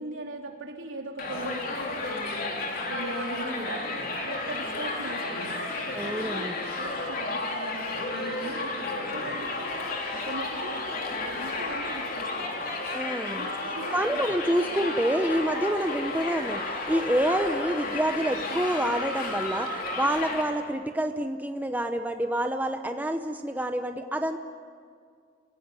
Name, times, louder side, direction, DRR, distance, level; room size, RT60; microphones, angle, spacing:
voice 1, 0.0-2.5 2.9-3.8 4.1-5.6 6.0-9.7 10.1-12.5 13.3-14.0, right 1 dB, 75° right, 1 dB, 3.7 m, -39 dB
Crowd, 1.2-20.4, left 2 dB, 45° left, 3.7 m, -32 dB
voice 2, 5.9-6.5 12.9-13.5 13.9-16.6 16.9-19.7 19.9-24.4, right 1 dB, 10° right, 6 dB, 0.8 m, -27 dB
29.0 x 17.5 x 9.8 m, 2.2 s
head